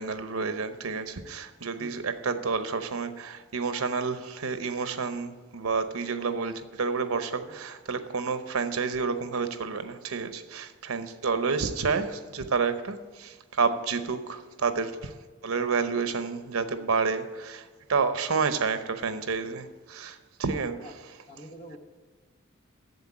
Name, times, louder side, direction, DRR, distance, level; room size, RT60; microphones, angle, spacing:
voice 1, 0.0-15.2 15.4-20.8, right 5 dB, 85° right, 10 dB, 0.9 m, -29 dB
voice 2, 21.3-21.8, equal, 35° left, 2 dB, 1.2 m, -46 dB
8.0 x 7.4 x 8.6 m, 1.5 s
head